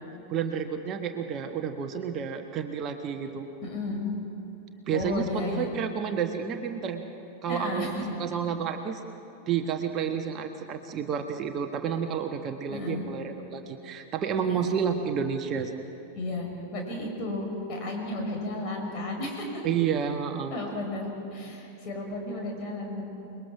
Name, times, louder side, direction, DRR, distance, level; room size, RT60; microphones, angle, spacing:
voice 1, 0.3-3.5 4.9-7.0 7.4-7.9 8.2-9.0 9.5-15.8 19.6-20.6, right 7 dB, 30° right, 5 dB, 1.2 m, -30 dB
voice 2, 3.6-4.0 4.9-5.7 7.5-7.9 12.7-13.0 14.5-14.8 16.1-19.6 20.5-23.0, left 2 dB, 35° left, 0 dB, 5.8 m, -33 dB
29.0 x 21.0 x 6.1 m, 3.0 s
figure-of-eight pair, 90°, 0 cm